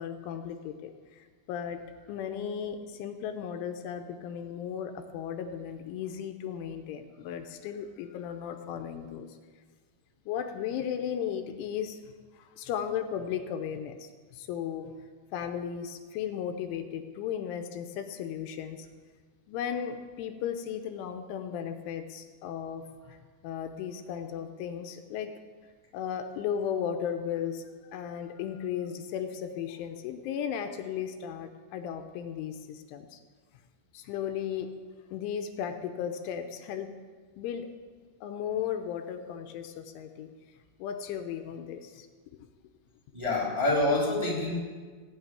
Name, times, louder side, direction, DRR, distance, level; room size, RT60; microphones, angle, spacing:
voice 1, 0.0-1.8 2.1-9.4 10.3-12.0 12.3-14.9 15.3-18.9 19.5-23.2 23.4-25.3 25.9-27.6 27.9-33.2 33.9-34.7 35.1-36.9 37.4-37.7 38.2-40.3 40.8-42.1, left 8 dB, 80° left, 7 dB, 3.2 m, -35 dB
voice 2, 43.1-44.6, left 2 dB, 10° right, -3 dB, 2.1 m, -26 dB
17.0 x 6.2 x 9.0 m, 1.5 s
omnidirectional pair, 5.6 m